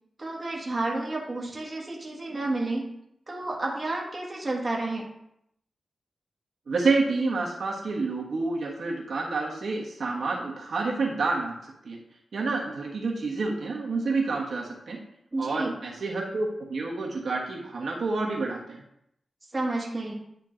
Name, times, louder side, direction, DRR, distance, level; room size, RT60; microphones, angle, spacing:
voice 1, 0.2-2.9 3.3-5.1 15.3-15.7 19.5-20.1, right 2 dB, 25° right, -2 dB, 1.4 m, -30 dB
voice 2, 6.7-12.0 12.3-15.0 15.4-18.8, right 3 dB, 70° right, -2 dB, 1.3 m, -28 dB
9.2 x 3.7 x 3.8 m, 0.76 s
wide cardioid pair, 120°, 0 cm